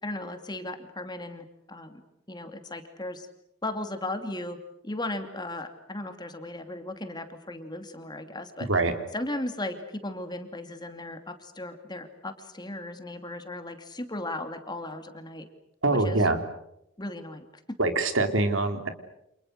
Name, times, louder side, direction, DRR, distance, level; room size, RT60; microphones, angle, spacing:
voice 1, 0.0-2.0 2.3-3.3 3.6-4.6 4.8-8.7 9.1-15.5 15.9-16.2 17.0-17.5, left 1 dB, 20° left, 7 dB, 2.7 m, -36 dB
voice 2, 15.8-16.4 17.8-18.9, right 2 dB, 65° right, 7 dB, 3.4 m, -24 dB
29.5 x 28.0 x 6.5 m, 0.80 s
head